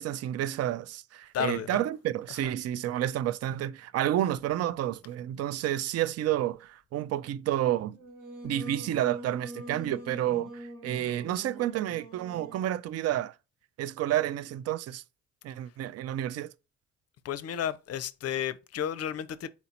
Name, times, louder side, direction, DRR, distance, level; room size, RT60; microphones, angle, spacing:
voice 1, 0.0-8.0 8.4-13.3 13.8-15.0 15.4-16.5, right 12 dB, 55° right, 0.4 m, -30 dB
voice 2, 1.3-1.8 17.2-19.5, left 9 dB, 50° left, 0.5 m, -32 dB
Singing, 7.9-12.8, right 1 dB, 75° right, 1.7 m, -44 dB
4.2 x 2.8 x 4.2 m
supercardioid pair, 55°, 31 cm